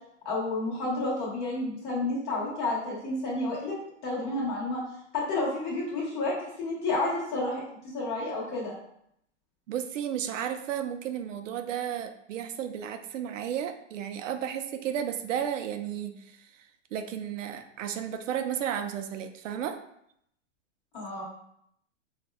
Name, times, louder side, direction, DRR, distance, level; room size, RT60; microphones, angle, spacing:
voice 1, 0.2-3.8 4.0-4.8 5.1-7.6 7.9-8.7 20.9-21.2, left 2 dB, 30° left, -5 dB, 1.1 m, -30 dB
voice 2, 9.7-16.5 16.9-19.8, right 9 dB, 90° right, 8 dB, 0.5 m, -33 dB
4.1 x 2.3 x 2.3 m, 0.73 s
hypercardioid pair, 145°, 37 cm